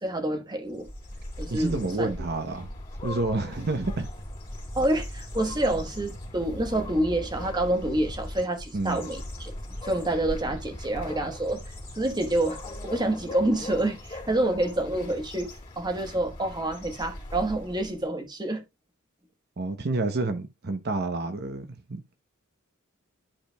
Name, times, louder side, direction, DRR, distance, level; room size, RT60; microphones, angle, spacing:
voice 1, 0.0-0.9 1.4-2.1 4.7-9.5 9.8-11.6 12.0-12.6 12.8-15.5 15.8-18.6, right 1 dB, 20° right, 1.2 m, -27 dB
sound 1, 0.7-18.0, left 1 dB, 25° left, 3.3 m, -39 dB
voice 2, 1.5-2.7 3.0-4.1 8.7-9.1 19.6-22.0, right 2 dB, 45° right, 0.8 m, -29 dB
12.0 x 5.0 x 2.2 m
head